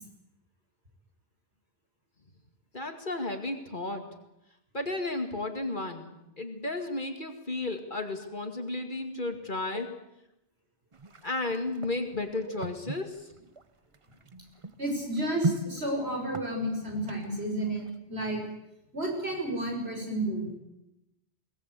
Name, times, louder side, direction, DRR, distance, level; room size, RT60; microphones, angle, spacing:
voice 1, 2.7-4.1 4.7-9.9 11.2-13.2, left 2 dB, 45° left, 5 dB, 2.4 m, -33 dB
sound 1, 10.9-18.0, right 2 dB, 30° right, 0.8 m, -38 dB
voice 2, 14.8-18.4 18.9-20.5, right 1 dB, 65° right, 0 dB, 6.9 m, -31 dB
22.5 x 18.5 x 8.4 m, 0.87 s
omnidirectional pair, 1.2 m